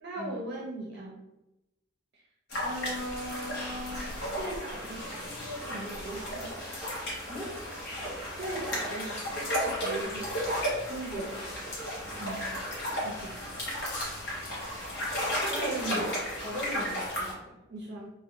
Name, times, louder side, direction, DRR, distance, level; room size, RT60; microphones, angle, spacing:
voice 1, 0.0-1.2 2.6-6.5 8.3-10.3 10.9-11.3 12.2-12.5 12.8-13.6 15.4-16.2 17.7-18.1, right 1 dB, 50° right, -3 dB, 0.5 m, -39 dB
sound 1, 2.5-17.3, equal, 55° left, 0.9 m, -34 dB
voice 2, 7.3-7.6 10.9-11.2 15.5-15.7 16.4-17.6, equal, 10° right, -6 dB, 0.8 m, -39 dB
2.5 x 2.0 x 2.7 m, 0.93 s
head